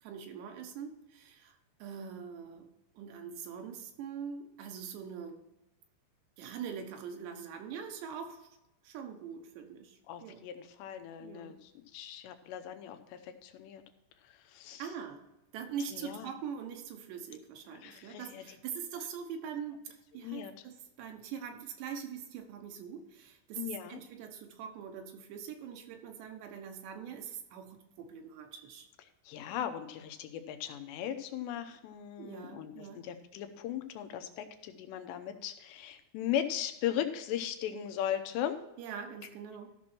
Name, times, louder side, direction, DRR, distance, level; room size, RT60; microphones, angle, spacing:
voice 1, 0.0-2.7 2.9-5.4 6.4-8.5 8.8-10.4 11.2-11.5 14.8-15.2 15.5-28.9 32.2-33.0 38.8-39.7, right 7 dB, 80° right, 4 dB, 3.4 m, -43 dB
voice 2, 10.1-13.8 14.2-14.8 15.9-16.3 17.7-18.6 20.2-20.5 23.6-24.0 29.3-38.6, left 10 dB, 85° left, 8 dB, 3.1 m, -38 dB
14.0 x 6.1 x 4.4 m, 0.93 s
omnidirectional pair, 4.9 m